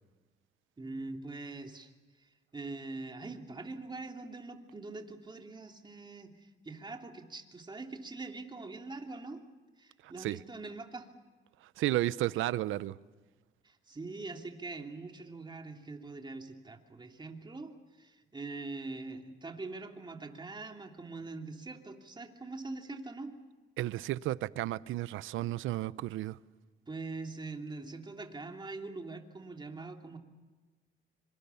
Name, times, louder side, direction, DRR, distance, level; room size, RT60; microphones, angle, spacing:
voice 1, 0.8-1.9 2.5-9.4 9.8-11.1 13.6-17.7 18.0-23.3 26.9-30.2, right 3 dB, 20° right, 2.9 m, -43 dB
voice 2, 10.0-10.4 11.8-13.0 23.8-26.4, right 15 dB, 85° right, 0.7 m, -33 dB
25.5 x 24.5 x 7.1 m
cardioid pair, 90°, 20 cm